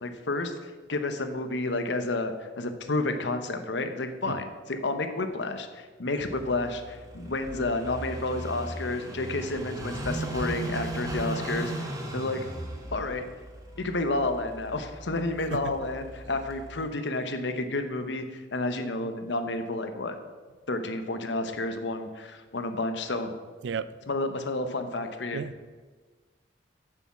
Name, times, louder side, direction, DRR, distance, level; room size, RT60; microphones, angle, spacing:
voice 1, 0.0-12.4 12.9-13.2 13.8-20.2 20.7-23.3 24.1-25.4, left 2 dB, 75° left, 0.9 m, -30 dB
Car passing by / Idling, 6.2-16.9, right 1 dB, 20° right, 1.1 m, -37 dB
voice 2, 25.3-25.7, right 6 dB, 75° right, 0.4 m, -33 dB
7.0 x 6.9 x 6.1 m
head